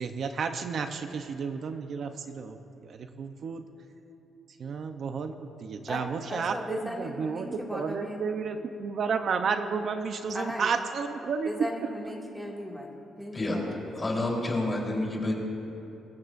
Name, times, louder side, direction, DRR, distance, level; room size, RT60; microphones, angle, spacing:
voice 1, 0.0-3.7 4.6-11.7, right 5 dB, 55° right, 7 dB, 0.7 m, -32 dB
voice 2, 5.9-8.3 10.3-10.7 11.5-14.2, equal, 5° right, -2 dB, 2.3 m, -37 dB
voice 3, 14.0-15.3, left 2 dB, 25° left, -2 dB, 3.7 m, -28 dB
24.5 x 14.0 x 2.6 m, 2.9 s
cardioid pair, 90°, 0 cm